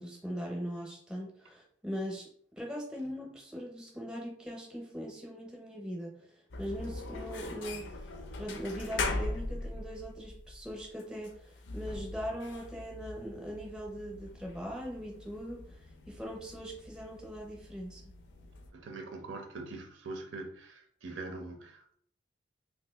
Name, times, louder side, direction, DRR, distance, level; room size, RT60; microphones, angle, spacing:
voice 1, 0.0-2.3 2.6-6.2 6.6-7.9 8.3-15.8 16.1-18.0, equal, 5° right, -1 dB, 0.6 m, -40 dB
sound 1, 6.5-18.7, left 3 dB, 70° left, 0.5 m, -41 dB
voice 2, 18.7-21.9, right 3 dB, 80° right, 5 dB, 0.5 m, -43 dB
2.6 x 2.6 x 3.4 m, 0.62 s
head